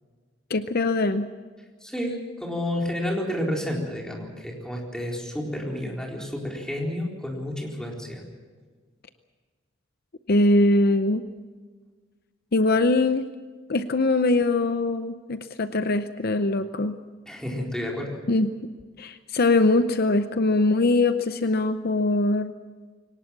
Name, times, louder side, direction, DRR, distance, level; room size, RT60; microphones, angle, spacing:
voice 1, 0.5-1.3 10.3-11.2 12.5-13.3 13.7-17.0 18.3-18.5 19.0-22.5, left 2 dB, 55° left, 10 dB, 0.7 m, -22 dB
voice 2, 1.8-8.2 17.3-18.1, left 1 dB, 5° left, -1 dB, 4.2 m, -30 dB
23.0 x 19.0 x 7.4 m, 1.5 s
head